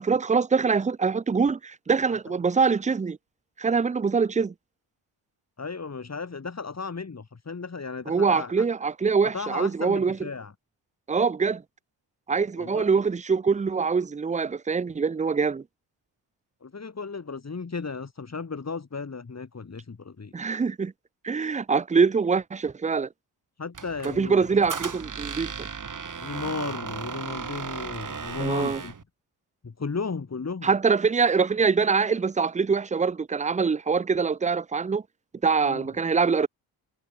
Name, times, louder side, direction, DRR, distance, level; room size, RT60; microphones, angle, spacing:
voice 1, 0.0-3.2 3.6-4.5 8.1-10.2 11.1-11.6 12.3-15.6 20.3-20.9 21.2-23.1 24.2-25.7 28.4-28.8 30.6-35.0 35.4-36.5, right 5 dB, 15° right, 0.6 m, -24 dB
voice 2, 5.6-8.6 9.3-10.5 12.6-12.9 16.6-20.3 23.6-24.5 26.1-28.9 29.6-30.7 35.6-35.9, left 4 dB, 30° left, 4.5 m, -35 dB
Squeak, 23.7-29.0, right 6 dB, 40° right, 3.1 m, -36 dB
supercardioid pair, 65°, 48 cm